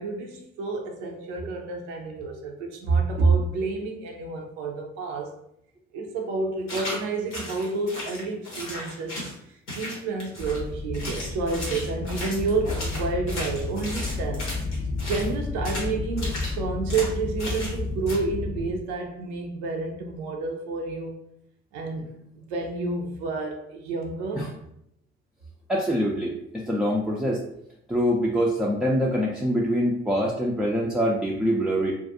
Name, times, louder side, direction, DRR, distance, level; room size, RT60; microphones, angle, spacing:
voice 1, 0.0-5.3 5.9-9.2 9.7-14.5 15.1-21.2 21.7-22.1 22.4-24.5, right 3 dB, 75° right, 2 dB, 0.5 m, -29 dB
sound 1, 6.7-7.0 7.3-9.4 9.7-10.6 10.9-15.3 15.6-15.9 16.2-16.5 16.9-17.1 17.4-17.8 18.1-18.2, left 1 dB, 90° left, 0.7 m, -35 dB
sound 2, 10.4-18.7, left 3 dB, 35° left, 0.7 m, -32 dB
voice 2, 25.7-27.4 27.9-31.9, equal, ahead, -3 dB, 0.3 m, -24 dB
2.3 x 2.2 x 2.7 m, 0.75 s
figure-of-eight pair, 45°, 34 cm